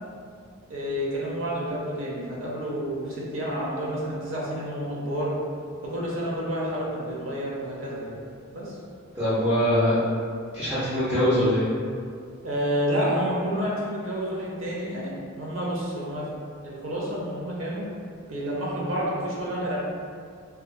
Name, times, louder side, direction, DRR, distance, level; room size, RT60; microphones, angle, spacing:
voice 1, 0.7-5.4 5.8-8.2 8.5-8.8 12.4-16.3 16.6-17.8 18.3-19.8, equal, 75° right, -5 dB, 0.6 m, -29 dB
voice 2, 9.1-10.0 10.5-11.7, equal, 10° right, -15 dB, 0.6 m, -22 dB
2.7 x 2.3 x 2.2 m, 2.2 s
head